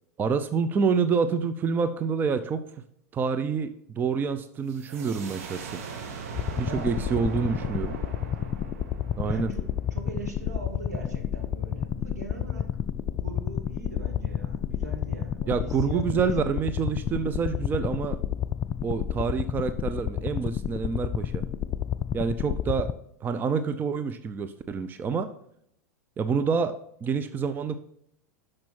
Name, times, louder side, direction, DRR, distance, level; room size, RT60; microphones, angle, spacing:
voice 1, 0.2-2.6 3.1-5.8 6.6-8.0 9.2-9.5 15.5-18.2 18.8-21.4 22.1-22.9 23.2-25.3 26.2-27.8, right 5 dB, 20° right, 10 dB, 0.6 m, -27 dB
sound 1, 4.7-10.2, right 5 dB, 55° right, 1.6 m, -40 dB
sound 2, 6.3-22.9, left 9 dB, 30° left, 0.4 m, -31 dB
voice 2, 6.7-7.0 9.2-9.6 9.9-12.7 13.1-16.5, right 2 dB, 80° right, 2 dB, 2.4 m, -40 dB
10.5 x 6.4 x 4.4 m, 0.72 s
figure-of-eight pair, 90°, 9 cm